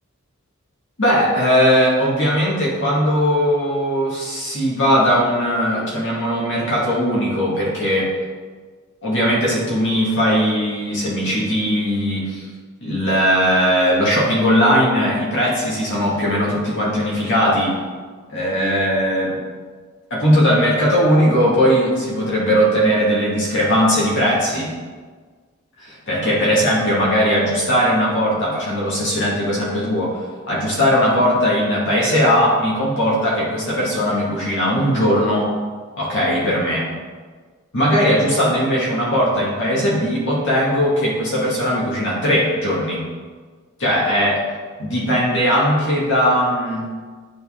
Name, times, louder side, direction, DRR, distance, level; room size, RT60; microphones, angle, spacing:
voice 1, 1.0-8.1 9.0-12.5 12.8-17.8 18.3-19.4 20.1-24.7 25.8-30.2 30.5-35.5 36.0-36.9 37.7-43.0 43.8-44.4 44.8-46.8, equal, 60° left, -5 dB, 2.2 m, -19 dB
9.4 x 4.4 x 3.8 m, 1.5 s
head